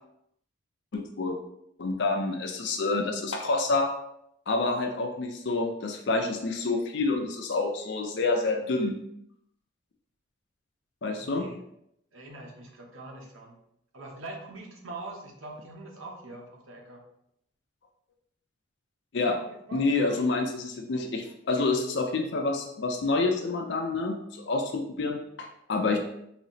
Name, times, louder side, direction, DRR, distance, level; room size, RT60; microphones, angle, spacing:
voice 1, 0.9-1.4 1.8-3.9 4.5-9.0 11.0-11.4 19.1-19.4 19.7-26.0, left 3 dB, 55° left, 3 dB, 0.4 m, -28 dB
voice 2, 11.2-11.6 12.1-13.5 13.9-17.0 19.2-20.2, right 2 dB, 85° right, 0 dB, 0.8 m, -43 dB
3.9 x 2.0 x 3.9 m, 0.75 s
head